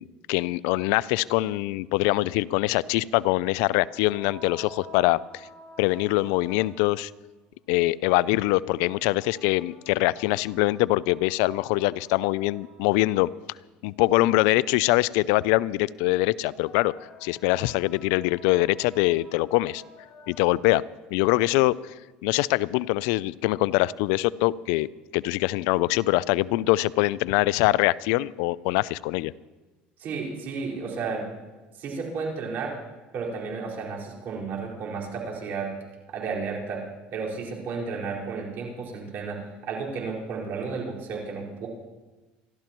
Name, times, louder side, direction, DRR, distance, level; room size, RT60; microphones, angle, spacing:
voice 1, 0.0-5.2 5.8-7.1 7.7-13.3 13.8-16.9 17.2-19.8 20.3-20.8 21.1-21.8 22.2-24.9 25.1-29.3, left 19 dB, 80° left, 21 dB, 0.3 m, -23 dB
sound 1, 3.1-7.1 8.6-13.1 16.3-20.8, left 2 dB, 50° left, 4.7 m, -50 dB
voice 2, 30.0-31.3 31.8-32.8 33.1-35.7 36.1-36.8 37.1-41.7, right 4 dB, 55° right, -3 dB, 4.6 m, -32 dB
27.0 x 12.5 x 3.0 m, 1.2 s
supercardioid pair, 90°, 4 cm